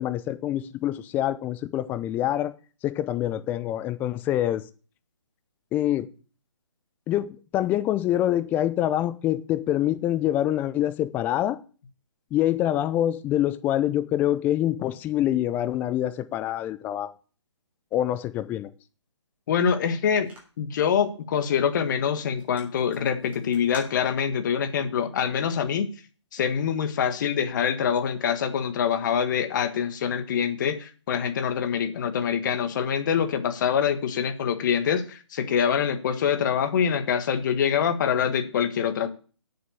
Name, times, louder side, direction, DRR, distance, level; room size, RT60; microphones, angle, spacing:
voice 1, 0.0-2.5 2.8-4.7 5.7-6.1 7.1-11.6 12.3-17.1 17.9-18.7, left 12 dB, 10° left, 0.5 m, -25 dB
voice 2, 19.5-20.3 20.6-25.9 26.3-39.1, left 7 dB, 40° left, 1.5 m, -25 dB
sound 1, 20.2-20.7 21.3-21.6 21.9-22.0 22.2-24.5, right 1 dB, 10° right, 3.5 m, -47 dB
8.8 x 6.9 x 7.0 m
figure-of-eight pair, 145°, 15 cm